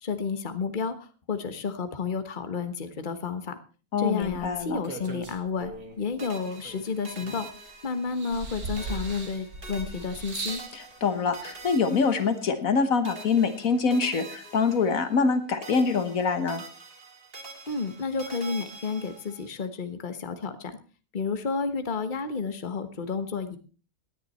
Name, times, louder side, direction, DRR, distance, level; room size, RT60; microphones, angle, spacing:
voice 1, 0.0-3.6 4.0-7.5 7.8-10.6 17.7-20.8 21.1-23.6, left 5 dB, 35° left, 10 dB, 1.4 m, -31 dB
voice 2, 3.9-4.8 10.7-16.6, left 5 dB, 70° left, 11 dB, 1.6 m, -25 dB
sound 1, 4.2-6.0 6.6-7.7 8.1-10.7 11.6-11.7, right 3 dB, 85° right, 2.7 m, -38 dB
sound 2, 6.2-8.5 8.8-12.8 13.0-15.4 15.6-19.5, right 2 dB, 40° right, 2.6 m, -46 dB
18.0 x 10.0 x 4.3 m, 0.36 s
omnidirectional pair, 1.5 m